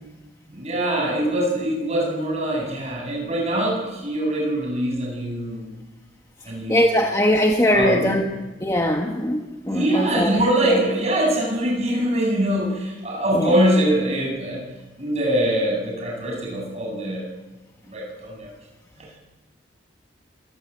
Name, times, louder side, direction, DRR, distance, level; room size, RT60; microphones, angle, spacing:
voice 1, 0.5-5.7 6.4-6.9 7.7-8.2 9.7-14.7 15.0-17.3 17.8-18.5 19.0-19.2, right 1 dB, 35° right, 0 dB, 7.9 m, -23 dB
voice 2, 6.7-8.3 8.6-10.4 13.3-13.5, left 1 dB, 15° left, 2 dB, 1.4 m, -20 dB
27.0 x 20.0 x 8.5 m, 1.2 s
head